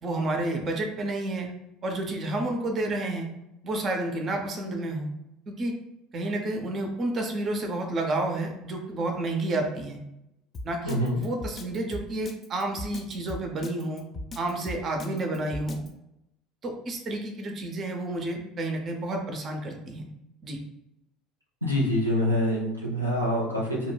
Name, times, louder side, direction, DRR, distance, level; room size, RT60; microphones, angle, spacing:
voice 1, 0.0-1.5 1.8-3.3 3.6-5.1 5.5-5.7 6.1-10.0 10.6-14.0 14.4-15.8 16.6-20.0 20.4-20.6, right 2 dB, 35° right, 2 dB, 0.5 m, -30 dB
Drum kit, 10.5-15.9, left 2 dB, 30° left, 0.3 m, -38 dB
voice 2, 10.9-11.2 21.6-23.9, equal, 90° right, -3 dB, 0.4 m, -26 dB
2.2 x 2.1 x 3.1 m, 0.86 s
figure-of-eight pair, 65°, 0 cm